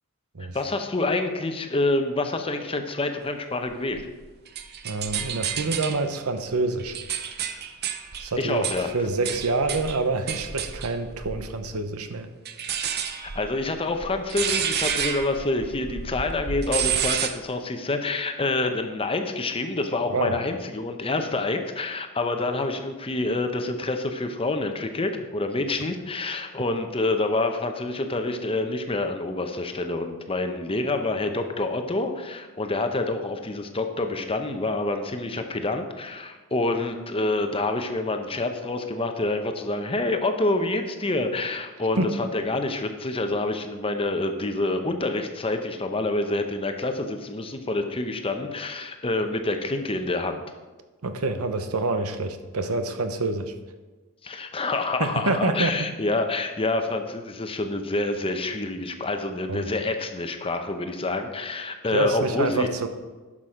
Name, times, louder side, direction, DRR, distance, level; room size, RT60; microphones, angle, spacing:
voice 1, 0.5-4.0 8.4-8.9 13.1-50.4 54.2-62.7, left 2 dB, 25° left, 6 dB, 0.8 m, -27 dB
sound 1, 3.9-6.0 6.6-11.7 12.5-17.3, right 8 dB, 45° right, 0.7 m, -30 dB
voice 2, 4.8-7.0 8.2-12.3 20.1-20.3 42.0-42.1 51.0-53.5 55.0-55.9 59.5-59.7 61.9-62.9, right 3 dB, 80° right, 8 dB, 0.9 m, -27 dB
11.5 x 6.1 x 5.0 m, 1.3 s
head